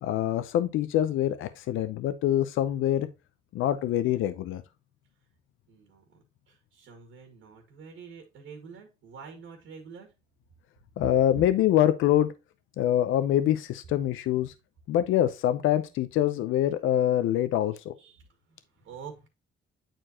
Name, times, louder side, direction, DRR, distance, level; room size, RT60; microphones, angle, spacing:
voice 1, 0.0-3.1 3.5-4.6 11.0-12.3 12.8-14.5 14.9-17.9, left 12 dB, 85° left, 0.7 m, -25 dB
voice 2, 5.7-10.1 11.0-11.1 18.0-18.3 18.8-19.3, right 6 dB, 85° right, 2.1 m, -46 dB
9.0 x 4.5 x 2.9 m
cardioid pair, 90°, 20 cm